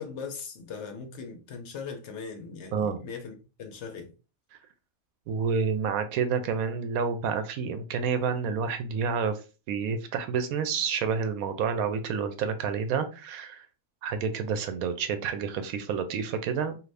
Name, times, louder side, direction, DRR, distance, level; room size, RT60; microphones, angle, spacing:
voice 1, 0.0-4.1, left 5 dB, 65° left, 0.9 m, -39 dB
voice 2, 5.3-9.4 9.7-13.7 14.0-16.8, right 6 dB, 90° right, 1.0 m, -29 dB
2.6 x 2.6 x 3.2 m
omnidirectional pair, 1.5 m